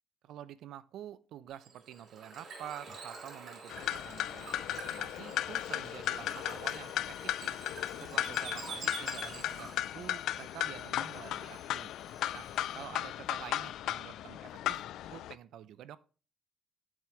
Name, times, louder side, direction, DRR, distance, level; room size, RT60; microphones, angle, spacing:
voice 1, 0.2-7.6 8.0-11.9 12.3-12.5 12.7-16.0, right 11 dB, 65° right, 0.6 m, -48 dB
Bird / Water, 1.5-9.9, right 4 dB, 45° right, 3.3 m, -47 dB
sound 1, 3.7-15.3, left 12 dB, 65° left, 0.3 m, -36 dB
Tambourine, 6.1-13.2, equal, 5° right, 2.0 m, -60 dB
7.5 x 7.4 x 3.2 m
cardioid pair, 170°, 0 cm